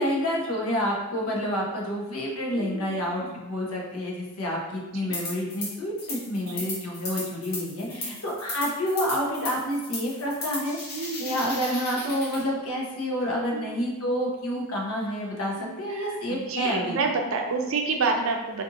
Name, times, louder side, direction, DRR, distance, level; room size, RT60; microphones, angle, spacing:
voice 1, 0.0-17.0, equal, 75° left, -2 dB, 0.8 m, -29 dB
voice 2, 2.6-3.4 4.9-5.2 6.5-6.8 7.9-8.2 10.9-11.4 13.5-13.7 14.5-14.7 15.6-18.6, right 4 dB, 65° right, 3 dB, 0.5 m, -30 dB
sound 1, 5.1-5.7 6.0-12.4, left 2 dB, 45° left, 0.9 m, -35 dB
2.7 x 2.5 x 3.7 m, 1.0 s
head